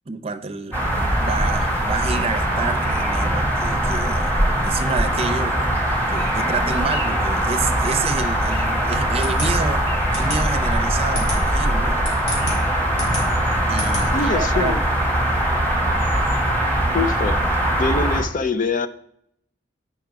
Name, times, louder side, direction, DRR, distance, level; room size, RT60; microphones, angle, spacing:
voice 1, 0.1-0.9 1.2-5.6 6.1-9.8 10.2-12.0 13.6-14.8, right 4 dB, 35° right, 0.7 m, -29 dB
sound 1, 0.7-18.2, right 1 dB, 10° left, 1.6 m, -21 dB
sound 2, 9.2-14.5, left 1 dB, 65° left, 3.5 m, -30 dB
voice 2, 14.1-14.8 16.9-17.4 17.8-18.9, left 4 dB, 45° left, 0.5 m, -23 dB
9.1 x 5.8 x 4.6 m
head